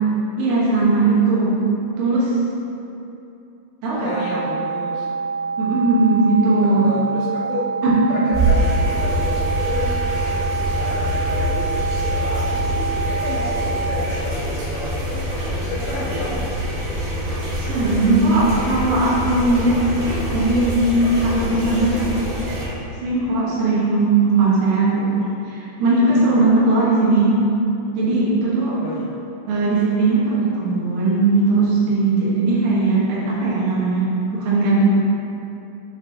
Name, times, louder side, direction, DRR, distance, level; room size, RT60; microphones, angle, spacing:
voice 1, 0.4-1.6 2.0-2.4 3.8-4.1 5.6-6.9 7.8-8.0 17.6-22.1 23.0-27.4 27.9-28.8 29.5-34.9, right 3 dB, 85° right, -8 dB, 4.0 m, -18 dB
voice 2, 4.0-5.1 6.6-7.7 8.1-10.0 10.7-12.7 13.1-16.5 23.3-23.4 26.1-26.5 28.8-29.1, left 2 dB, 90° left, -6 dB, 3.1 m, -31 dB
sound 1, 4.0-14.0, right 5 dB, 70° left, 2.9 m, -27 dB
sound 2, 8.3-22.7, right 1 dB, 60° right, 2.5 m, -24 dB
8.5 x 4.5 x 2.8 m, 2.8 s
omnidirectional pair, 5.7 m